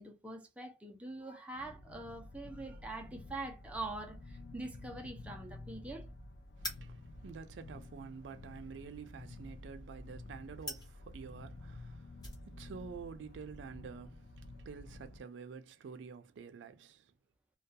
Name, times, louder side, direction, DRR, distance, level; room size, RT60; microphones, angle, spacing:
voice 1, 0.0-6.1, right 2 dB, 10° right, 0.5 m, -44 dB
sound 1, 1.5-15.2, left 2 dB, 70° left, 0.4 m, -51 dB
sound 2, 2.6-15.7, left 1 dB, 25° left, 1.0 m, -53 dB
voice 2, 6.6-17.1, right 5 dB, 90° right, 0.4 m, -49 dB
2.3 x 2.2 x 2.6 m
head